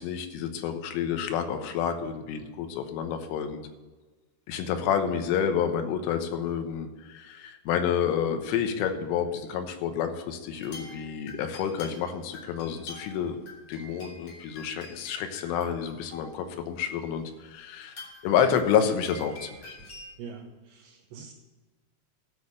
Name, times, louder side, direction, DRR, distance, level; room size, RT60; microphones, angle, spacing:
voice 1, 0.0-3.6 4.5-13.4 13.7-18.0 18.2-19.8, left 8 dB, 80° left, 7 dB, 3.5 m, -29 dB
sound 1, 10.5-16.5 17.2-17.3 17.8-20.1, left 2 dB, 35° left, 5.0 m, -47 dB
voice 2, 20.2-21.3, right 6 dB, 70° right, 0 dB, 3.1 m, -44 dB
13.0 x 6.4 x 6.5 m, 1.3 s
omnidirectional pair, 5.7 m